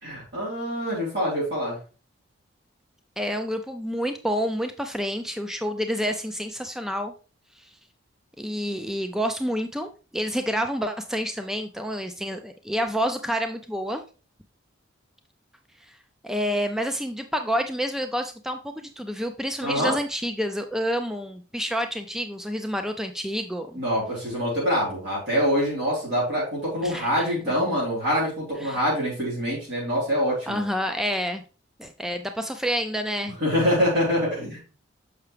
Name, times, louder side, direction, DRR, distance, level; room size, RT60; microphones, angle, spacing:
voice 1, 0.0-1.8 19.6-20.0 23.7-30.6 33.4-34.6, equal, 55° right, -7 dB, 4.0 m, -25 dB
voice 2, 3.2-7.1 7.6-7.8 8.4-14.0 15.8-16.0 16.2-23.8 26.8-27.5 28.6-28.8 30.5-31.4 31.8-33.4, equal, ahead, 6 dB, 0.4 m, -29 dB
6.8 x 5.7 x 3.3 m, 0.35 s
head